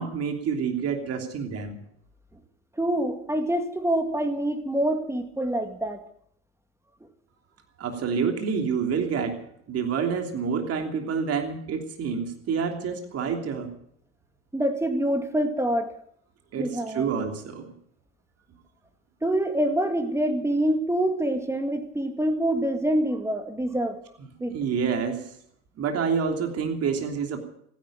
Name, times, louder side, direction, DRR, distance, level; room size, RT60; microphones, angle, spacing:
voice 1, 0.0-1.8 7.8-9.4 9.7-13.7 16.5-17.7 24.4-25.3 25.8-27.4, right 6 dB, 40° right, 4 dB, 3.1 m, -28 dB
voice 2, 2.8-6.0 14.5-15.9 16.6-17.1 19.2-24.0 24.4-24.6, right 1 dB, 10° right, 7 dB, 2.0 m, -26 dB
15.0 x 10.5 x 8.6 m, 0.68 s
hypercardioid pair, 80°, 35 cm